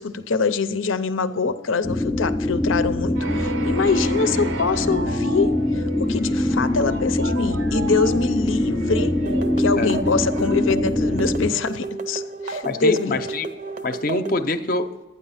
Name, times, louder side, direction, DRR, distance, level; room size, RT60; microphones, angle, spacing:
voice 1, 0.0-5.5 6.0-9.1 9.6-13.2, left 4 dB, 85° left, 0.6 m, -24 dB
sound 1, 1.8-11.5, left 1 dB, 10° left, 0.3 m, -23 dB
sound 2, 3.2-11.9, right 3 dB, 75° right, 0.8 m, -35 dB
sound 3, 9.3-14.4, right 3 dB, 40° right, 0.6 m, -33 dB
voice 2, 12.6-13.5 13.8-14.9, left 2 dB, 45° left, 0.7 m, -25 dB
12.0 x 9.6 x 5.7 m
head